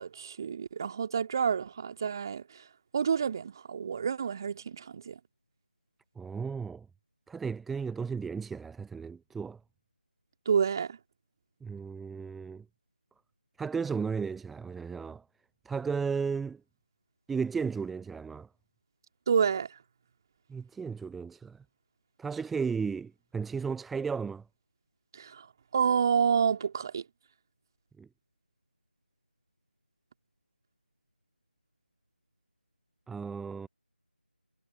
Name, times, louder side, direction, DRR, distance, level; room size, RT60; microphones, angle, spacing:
voice 1, 0.0-2.6 2.9-5.2 10.5-11.0 19.3-19.8 25.1-25.5 25.7-27.0, right 7 dB, 20° right, 2.5 m, -29 dB
voice 2, 6.2-6.9 7.3-9.6 11.6-12.6 13.6-15.2 15.6-16.6 17.3-18.5 20.5-21.6 22.2-24.4 28.0-28.1 33.1-33.7, right 5 dB, ahead, 0.6 m, -34 dB
figure-of-eight pair, 165°, 6 cm